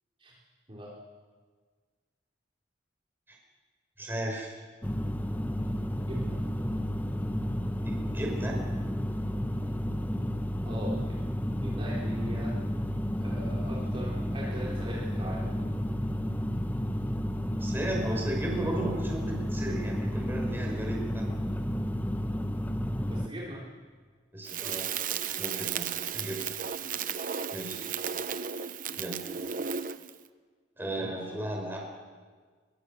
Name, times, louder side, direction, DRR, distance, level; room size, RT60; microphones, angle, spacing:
voice 1, 4.0-4.5 7.8-8.6 17.6-21.3 24.3-24.9 25.4-25.9 26.1-26.5 27.5-27.9 29.0-29.2 30.8-31.8, right 1 dB, 10° right, -1 dB, 5.5 m, -35 dB
sound 1, 4.8-23.3, equal, 10° left, 0.9 m, -31 dB
voice 2, 5.9-6.4 10.6-11.2 11.6-12.6 13.2-15.5 23.0-23.7 31.0-31.3, equal, 30° right, -5 dB, 3.7 m, -40 dB
Crackle, 24.5-30.2, right 7 dB, 45° right, 0.8 m, -34 dB
23.5 x 23.5 x 7.1 m, 1.5 s
head